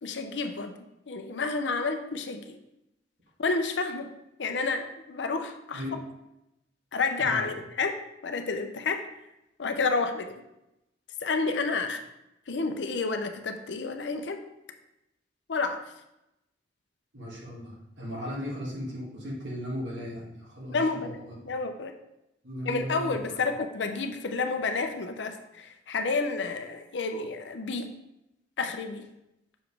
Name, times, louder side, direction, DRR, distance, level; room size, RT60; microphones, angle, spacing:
voice 1, 0.0-0.8 1.1-2.6 3.4-4.1 4.4-5.8 6.9-7.9 8.2-9.0 9.6-10.3 11.2-12.0 12.5-14.4 15.5-15.8 20.7-21.2 21.4-21.9 22.7-27.9 28.6-29.1, left 4 dB, 80° left, 6 dB, 0.6 m, -30 dB
voice 2, 7.2-7.5 17.1-21.3 22.4-23.4, equal, 90° right, -5 dB, 2.2 m, -37 dB
6.2 x 4.9 x 3.4 m, 0.88 s
head